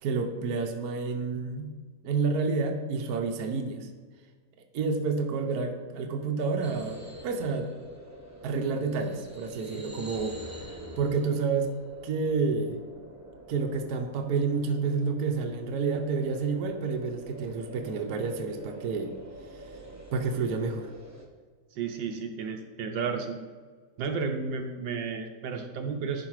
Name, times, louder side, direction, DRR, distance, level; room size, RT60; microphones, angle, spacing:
voice 1, 0.0-1.7 2.0-3.9 4.7-7.7 8.4-10.4 11.0-11.7 12.0-12.8 13.5-19.1 20.1-20.9, right 4 dB, 60° right, 4 dB, 1.2 m, -29 dB
sound 1, 6.6-21.3, right 1 dB, 15° right, 0.6 m, -46 dB
voice 2, 21.7-23.4 24.0-26.3, right 5 dB, 75° right, 4 dB, 1.4 m, -32 dB
11.0 x 4.8 x 4.8 m, 1.5 s
omnidirectional pair, 2.1 m